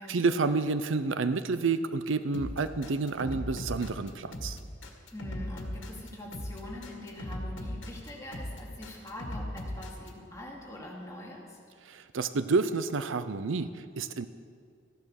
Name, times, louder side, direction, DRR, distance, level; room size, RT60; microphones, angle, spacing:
voice 1, 0.0-4.6 11.8-14.3, right 4 dB, 75° right, 12 dB, 0.6 m, -29 dB
sound 1, 2.3-10.1, left 1 dB, 70° left, 1.9 m, -38 dB
voice 2, 5.1-11.6, left 1 dB, 15° left, -4 dB, 2.5 m, -43 dB
14.5 x 11.0 x 6.4 m, 2.1 s
head